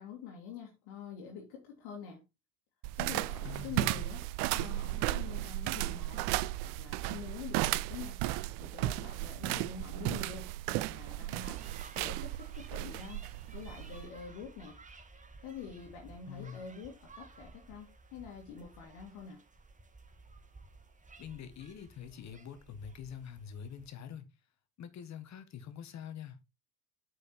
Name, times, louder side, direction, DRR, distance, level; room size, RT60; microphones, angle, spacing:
voice 1, 0.0-2.2 2.9-4.2 4.5-6.3 6.6-8.2 8.6-11.6 12.0-13.2 13.5-14.8 15.4-19.4, left 6 dB, 55° left, 2.3 m, -46 dB
sound 1, 2.8-14.1, right 17 dB, 50° right, 0.6 m, -35 dB
voice 2, 3.4-4.0 16.3-16.7 21.2-24.3 24.8-26.4, left 8 dB, 35° left, 1.7 m, -45 dB
sound 2, 11.3-23.9, right 3 dB, 15° right, 1.9 m, -55 dB
8.5 x 5.1 x 4.5 m
figure-of-eight pair, 70°, 45 cm